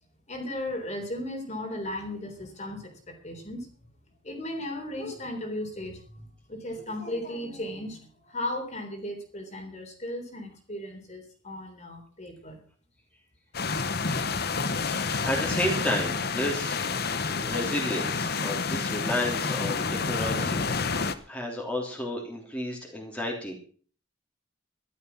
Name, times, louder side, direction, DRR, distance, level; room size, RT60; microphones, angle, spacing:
voice 1, 0.3-3.7 4.2-12.6, left 1 dB, 35° left, 3 dB, 3.6 m, -36 dB
sound 1, 13.5-21.2, left 4 dB, 55° left, 1.0 m, -29 dB
voice 2, 14.9-20.6 21.3-23.5, left 1 dB, 5° left, -1 dB, 3.2 m, -32 dB
13.0 x 12.5 x 5.9 m, 0.43 s
head